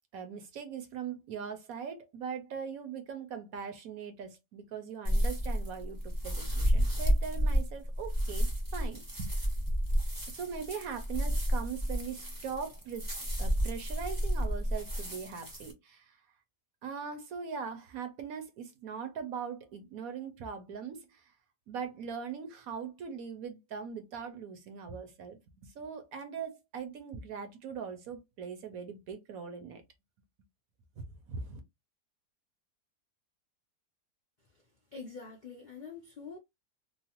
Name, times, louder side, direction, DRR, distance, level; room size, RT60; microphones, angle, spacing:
voice 1, 0.1-9.4 10.3-13.1 13.4-16.2 16.8-21.2 21.7-29.8 31.3-31.6, right 6 dB, 65° right, 1.0 m, -41 dB
sound 1, 5.0-15.7, equal, 20° right, 0.5 m, -31 dB
voice 2, 34.9-36.4, left 5 dB, 65° left, 0.4 m, -45 dB
3.0 x 2.1 x 2.8 m
omnidirectional pair, 1.8 m